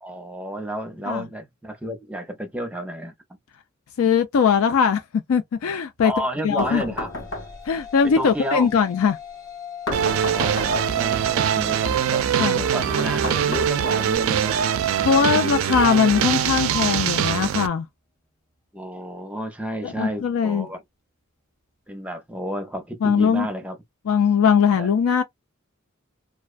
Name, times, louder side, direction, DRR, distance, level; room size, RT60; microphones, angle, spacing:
voice 1, 0.0-3.1 6.0-7.1 8.0-8.7 10.3-14.6 15.1-15.7 18.7-20.8 21.9-23.8 24.8-24.9, equal, 5° right, 0.6 m, -31 dB
voice 2, 4.0-5.0 5.3-6.1 6.4-6.8 7.7-9.2 12.4-12.7 15.0-17.9 19.8-20.7 23.0-23.5 24.1-25.2, left 6 dB, 90° left, 0.4 m, -20 dB
sound 1, 6.6-7.9 9.9-11.2 13.0-14.2, left 1 dB, 65° left, 0.9 m, -32 dB
sound 2, 6.7-15.2, left 8 dB, 15° left, 1.1 m, -43 dB
sound 3, 9.9-17.7, right 9 dB, 70° right, 0.4 m, -23 dB
2.4 x 2.2 x 2.4 m
head